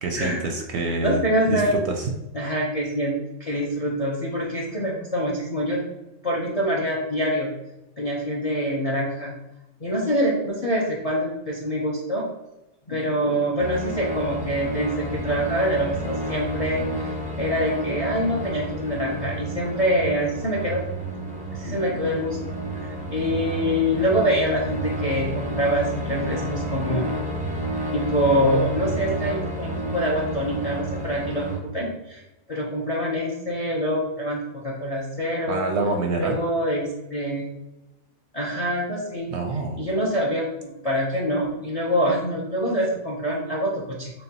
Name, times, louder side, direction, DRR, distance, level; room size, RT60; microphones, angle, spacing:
voice 1, 0.0-1.2 1.5-2.1 35.5-36.4 39.3-39.8, right 3 dB, 65° right, 3 dB, 0.7 m, -26 dB
voice 2, 1.0-1.7 2.3-5.8 6.2-7.5 8.0-9.3 9.8-12.2 12.9-17.1 17.4-20.8 21.5-27.2 27.9-31.5 31.7-32.2 32.5-35.7 36.2-37.5 38.3-39.3 39.8-44.1, equal, 45° left, -3 dB, 0.5 m, -25 dB
sound 1, 13.6-31.6, right 1 dB, 10° right, 0.4 m, -31 dB
6.5 x 2.2 x 2.8 m, 0.96 s
omnidirectional pair, 1.5 m